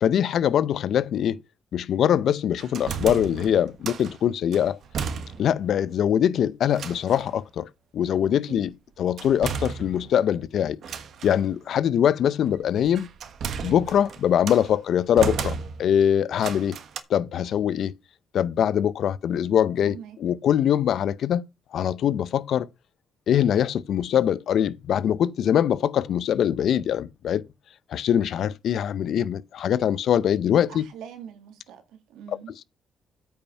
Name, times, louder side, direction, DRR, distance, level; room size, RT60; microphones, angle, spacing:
voice 1, 0.0-1.4 1.7-4.8 5.4-7.7 7.9-8.7 9.0-10.8 11.2-13.1 13.6-16.8 17.1-17.9 18.3-21.5 21.7-22.7 23.3-27.4 27.9-30.8 32.3-32.6, left 9 dB, 70° left, 0.5 m, -23 dB
sound 1, 2.6-4.2 4.5-5.7 5.9-6.0 6.7-7.3 9.2-10.3 10.8-11.4 12.5-14.7 15.2-16.0 16.4-17.0, right 6 dB, 65° right, 1.2 m, -34 dB
voice 2, 19.8-20.2 30.7-31.8 32.1-32.6, right 8 dB, 90° right, 2.2 m, -42 dB
8.8 x 5.6 x 5.4 m
cardioid pair, 90°, 0 cm